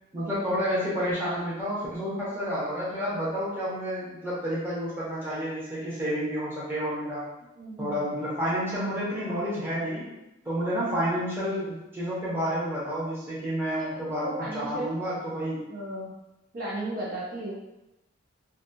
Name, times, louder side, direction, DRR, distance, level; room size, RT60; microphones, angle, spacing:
voice 1, 0.1-7.2 7.8-10.0 10.4-15.6, equal, 10° right, -8 dB, 0.7 m, -30 dB
voice 2, 7.6-8.1 13.7-14.9 15.7-16.1 16.5-17.5, right 1 dB, 45° right, -6 dB, 0.5 m, -35 dB
2.6 x 2.3 x 2.7 m, 0.94 s
head